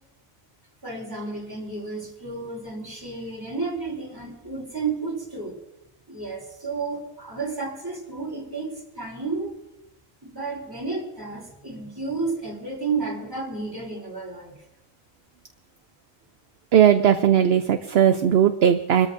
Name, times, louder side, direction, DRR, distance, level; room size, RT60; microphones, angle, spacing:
voice 1, 0.8-5.5 6.1-9.5 10.2-14.5, right 4 dB, 15° right, -2 dB, 3.3 m, -32 dB
voice 2, 16.7-19.1, right 9 dB, 60° right, 8 dB, 0.8 m, -18 dB
27.0 x 13.5 x 2.6 m, 0.94 s
omnidirectional pair, 1.4 m